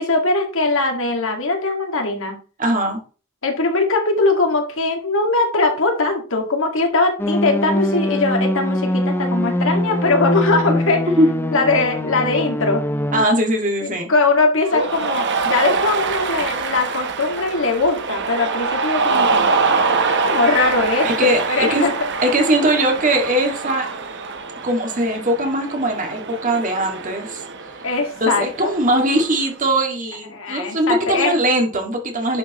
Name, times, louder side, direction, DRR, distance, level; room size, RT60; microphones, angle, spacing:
voice 1, 0.0-2.4 3.4-11.0 11.5-12.8 13.8-19.5 20.1-21.9 27.8-28.8 30.3-31.4, left 3 dB, 60° left, 3 dB, 2.0 m, -20 dB
voice 2, 2.6-3.0 11.2-11.3 13.1-14.1 21.0-21.8 22.2-23.9 24.6-27.4 28.2-32.4, right 1 dB, 35° right, 2 dB, 2.2 m, -20 dB
sound 1, 7.2-13.3, left 1 dB, 10° left, 0.7 m, -22 dB
Cheering, 14.7-29.5, right 4 dB, 55° right, 1.1 m, -24 dB
11.0 x 6.8 x 3.1 m, 0.38 s
head